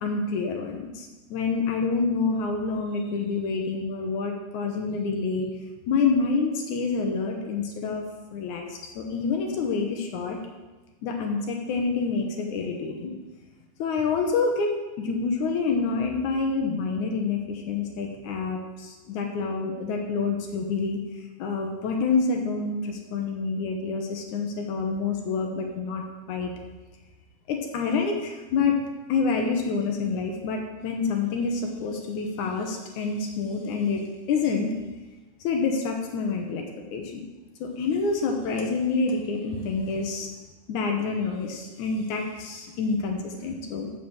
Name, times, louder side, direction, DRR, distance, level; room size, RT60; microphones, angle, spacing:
voice 1, 0.0-5.6 5.9-8.0 8.3-10.4 11.0-13.2 13.8-14.7 15.0-21.0 21.4-26.0 26.3-26.5 27.5-28.8 29.1-34.0 34.3-34.7 35.4-36.7 36.9-37.2 37.6-40.3 40.7-43.9, left 4 dB, 70° left, 2 dB, 2.2 m, -27 dB
7.0 x 6.2 x 7.1 m, 1.2 s
omnidirectional pair, 3.9 m